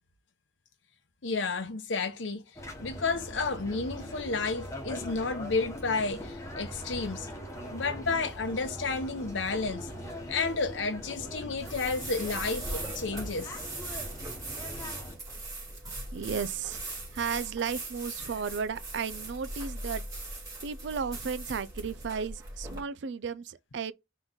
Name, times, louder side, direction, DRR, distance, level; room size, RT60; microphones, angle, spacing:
voice 1, 1.2-2.4 2.8-7.3 7.7-9.9 10.3-13.6 15.8-15.9, left 4 dB, 65° left, 0.8 m, -31 dB
sound 1, 2.6-15.2, equal, 15° left, 1.1 m, -41 dB
sound 2, 11.6-22.8, right 2 dB, 20° right, 2.3 m, -40 dB
voice 2, 16.1-16.8 17.1-20.0 20.6-23.9, right 6 dB, 60° right, 0.4 m, -34 dB
4.0 x 3.1 x 3.6 m
head